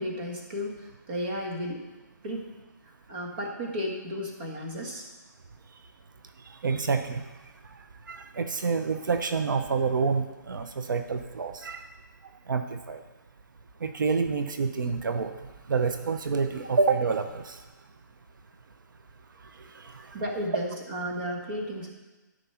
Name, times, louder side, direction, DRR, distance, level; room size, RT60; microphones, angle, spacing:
voice 1, 0.0-1.8 2.2-2.5 2.8-5.0 20.1-21.9, equal, 30° right, 0 dB, 1.6 m, -33 dB
voice 2, 6.4-7.3 7.7-11.9 12.5-13.0 13.8-15.3 15.7-17.6 19.5-20.2, right 5 dB, 85° right, 8 dB, 0.8 m, -28 dB
13.0 x 5.2 x 5.7 m, 1.1 s
hypercardioid pair, 180°, 10 cm